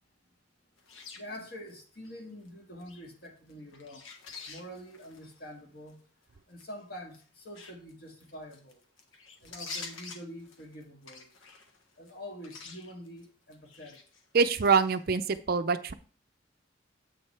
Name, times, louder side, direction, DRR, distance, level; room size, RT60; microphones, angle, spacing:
sound 1, 0.8-1.7 2.0-2.5 2.8-5.5 5.9-6.0 6.6-6.8 7.1-12.1 12.4-13.3 13.5-15.0 15.3-15.4, left 4 dB, 85° left, 1.3 m, -47 dB
voice 1, 1.1-6.0 6.5-8.8 9.4-11.3 12.0-14.0, equal, 50° left, 1.9 m, -46 dB
voice 2, 14.3-15.9, right 5 dB, 50° right, 0.5 m, -25 dB
8.1 x 6.5 x 3.3 m
head